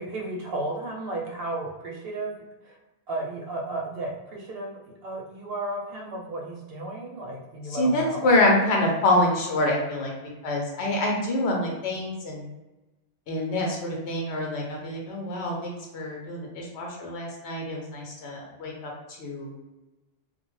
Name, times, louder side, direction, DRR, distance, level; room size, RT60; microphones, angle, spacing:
voice 1, 0.0-2.3 2.6-2.8 3.1-8.3, right 2 dB, 65° right, -1 dB, 0.9 m, -34 dB
voice 2, 7.7-10.1 10.4-12.5 13.3-18.9 19.2-19.6, left 1 dB, 90° left, -1 dB, 0.9 m, -26 dB
2.3 x 2.2 x 3.0 m, 1.1 s
omnidirectional pair, 1.1 m